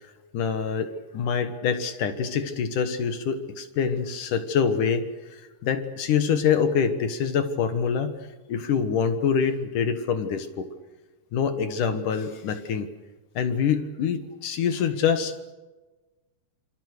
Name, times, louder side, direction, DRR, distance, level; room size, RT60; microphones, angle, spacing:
voice 1, 0.3-8.2 8.5-10.7 11.3-12.9 13.4-15.4, left 7 dB, 65° left, 9 dB, 2.8 m, -25 dB
27.0 x 25.5 x 6.6 m, 1.2 s
omnidirectional pair, 4.2 m